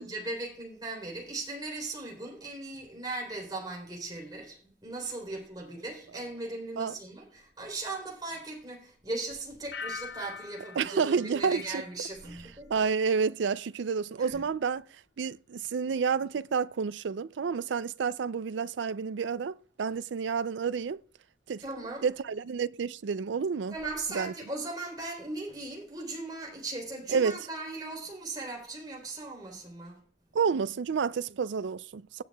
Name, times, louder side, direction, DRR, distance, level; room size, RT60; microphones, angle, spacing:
voice 1, 0.0-12.7 14.2-14.4 21.6-22.1 23.7-30.0, right 2 dB, 20° right, 3.5 m, -38 dB
sound 1, 9.7-12.6 12.9-13.4, left 5 dB, 65° left, 0.5 m, -44 dB
voice 2, 10.8-11.8 12.7-14.8 15.2-21.0 21.5-21.6 22.0-23.7 24.1-24.3 27.1-27.5 30.3-32.2, right 6 dB, 80° right, 0.4 m, -29 dB
17.0 x 7.8 x 2.3 m
head